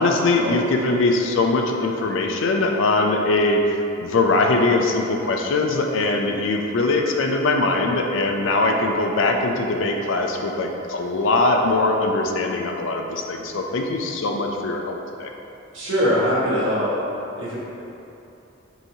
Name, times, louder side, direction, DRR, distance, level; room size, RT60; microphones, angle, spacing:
voice 1, 0.0-15.3, left 2 dB, 70° left, 3 dB, 0.4 m, -21 dB
voice 2, 15.7-16.9 17.4-17.6, equal, 75° right, -8 dB, 1.2 m, -22 dB
5.4 x 3.0 x 2.7 m, 2.9 s
head